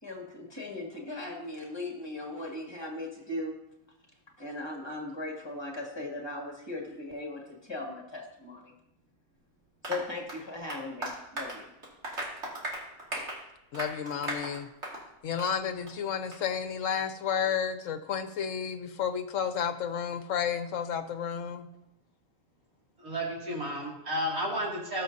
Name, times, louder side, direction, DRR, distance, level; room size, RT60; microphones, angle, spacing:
voice 1, 0.0-3.5 4.4-8.7 9.9-11.6, left 2 dB, 20° left, -1 dB, 2.1 m, -38 dB
Applause, 9.8-15.1 15.4-15.5 15.9-16.0 16.3-16.4, right 1 dB, 55° right, 2.5 m, -38 dB
voice 2, 13.7-14.7 15.2-21.7, left 7 dB, 70° left, 9 dB, 1.1 m, -31 dB
voice 3, 23.0-25.0, equal, 90° right, -3 dB, 3.0 m, -32 dB
19.0 x 6.3 x 2.7 m, 0.88 s
omnidirectional pair, 1.5 m